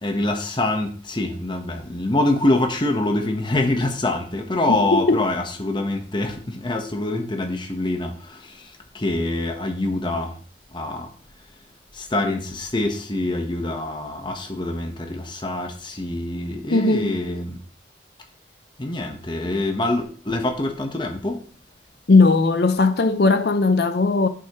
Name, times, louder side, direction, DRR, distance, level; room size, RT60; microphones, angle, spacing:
voice 1, 0.0-10.4 10.7-11.1 11.9-17.6 18.8-21.4, left 2 dB, 25° left, 1.1 m, -25 dB
voice 2, 4.7-5.2 16.7-17.2 22.1-24.3, left 3 dB, 60° left, 0.6 m, -18 dB
9.7 x 5.7 x 3.1 m
head